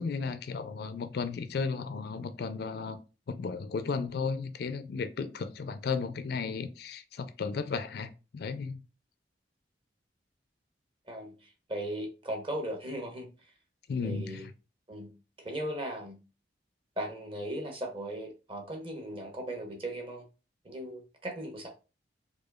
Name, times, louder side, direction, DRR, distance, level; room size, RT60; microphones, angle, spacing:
voice 1, 0.0-3.0 3.3-8.8 13.9-14.5, left 5 dB, 60° left, 0.4 m, -34 dB
voice 2, 11.1-13.3 14.0-14.5 14.9-15.1 15.4-16.2 17.0-20.2 20.6-21.7, right 1 dB, 30° right, 0.9 m, -37 dB
4.8 x 2.3 x 2.3 m
head